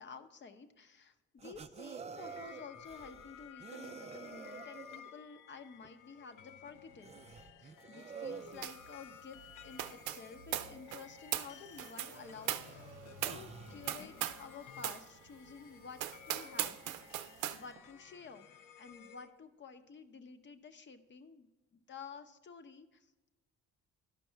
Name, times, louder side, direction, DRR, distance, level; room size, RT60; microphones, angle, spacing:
voice 1, 0.0-12.9 13.2-17.0 17.3-18.5 18.8-23.3, left 5 dB, 40° left, 9 dB, 0.8 m, -52 dB
sound 1, 1.4-5.2 5.8-5.9 6.5-6.6 7.0-8.7 10.6-10.7 11.4-11.5 11.8-14.0 17.0-17.1 17.5-17.9 18.9-19.0, right 6 dB, 25° right, 0.3 m, -49 dB
sound 2, 2.2-19.3, left 8 dB, 85° left, 0.6 m, -55 dB
sound 3, 8.6-8.9 9.1-14.5 14.8-15.1 15.5-15.6 16.0-17.6, right 12 dB, 85° right, 0.6 m, -39 dB
12.0 x 5.3 x 4.5 m, 1.1 s
cardioid pair, 90°, 30 cm